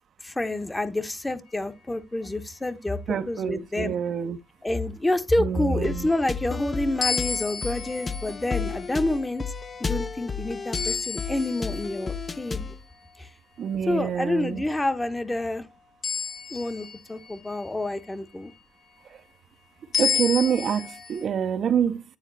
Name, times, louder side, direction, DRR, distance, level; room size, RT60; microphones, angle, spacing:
voice 1, 0.2-3.0 3.3-3.9 4.6-9.4 9.8-12.8 13.2-13.3 13.9-15.7 16.5-18.5, left 2 dB, 20° left, 1.1 m, -28 dB
voice 2, 3.1-4.4 5.4-6.1 13.6-14.6 20.0-22.2, right 8 dB, 65° right, 0.7 m, -26 dB
sound 1, 5.8-12.8, left 5 dB, 35° left, 0.7 m, -33 dB
sound 2, 7.0-12.5 16.0-18.1 19.9-21.2, left 7 dB, 70° left, 2.5 m, -32 dB
9.3 x 3.9 x 4.0 m
supercardioid pair, 60°, 0 cm